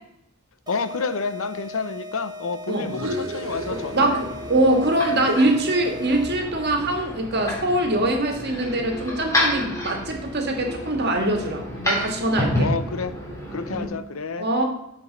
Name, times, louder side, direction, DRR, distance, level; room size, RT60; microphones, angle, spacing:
voice 1, 0.7-4.2 12.6-13.2 13.5-14.5, left 4 dB, 80° left, 0.8 m, -29 dB
sound 1, 0.7-6.6, left 1 dB, 20° right, 0.8 m, -39 dB
sound 2, 2.8-4.6 4.9-7.1, equal, 70° right, 1.6 m, -36 dB
sound 3, 3.3-13.8, left 1 dB, 15° left, 3.3 m, -30 dB
voice 2, 3.7-12.7 13.7-13.9 14.4-14.6, right 1 dB, 55° right, 2.0 m, -23 dB
13.0 x 5.4 x 5.4 m
head